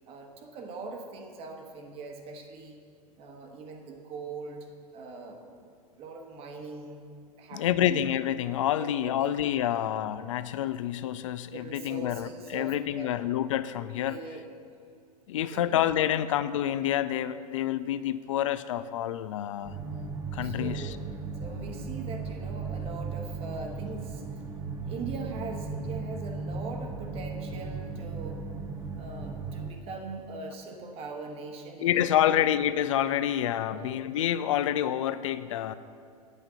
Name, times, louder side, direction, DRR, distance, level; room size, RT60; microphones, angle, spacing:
voice 1, 0.1-2.8 3.2-7.0 7.4-8.0 8.7-9.3 9.6-9.9 11.5-13.3 14.1-14.5 15.5-16.2 20.4-21.0 21.4-24.4 24.9-28.5 29.0-32.4 33.6-33.9, right 4 dB, 30° right, 4 dB, 1.2 m, -41 dB
voice 2, 7.5-14.2 15.3-19.8 20.3-21.0 31.8-35.7, left 11 dB, 55° left, 14 dB, 0.5 m, -28 dB
sound 1, 19.6-29.7, right 4 dB, 15° right, 0.8 m, -36 dB
10.0 x 8.3 x 5.7 m, 2.2 s
figure-of-eight pair, 100°, 20 cm